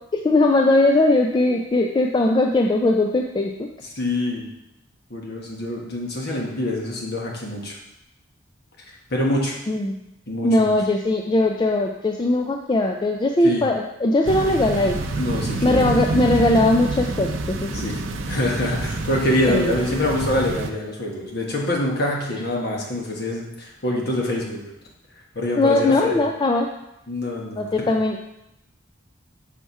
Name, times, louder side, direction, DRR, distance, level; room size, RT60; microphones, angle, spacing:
voice 1, 0.1-3.7 9.7-10.0 10.4-15.0 15.6-17.7 19.5-19.7 25.6-26.7 27.6-28.2, left 2 dB, 25° left, 2 dB, 0.3 m, -19 dB
voice 2, 3.9-4.5 5.1-7.8 9.1-9.6 10.3-10.7 13.4-13.7 15.2-15.9 17.7-18.0 18.3-24.6 25.3-26.2 27.1-27.9, left 1 dB, 55° left, -1 dB, 1.3 m, -25 dB
sound 1, 14.2-20.7, right 2 dB, 75° right, 0.6 m, -27 dB
5.7 x 4.2 x 4.6 m, 0.87 s
head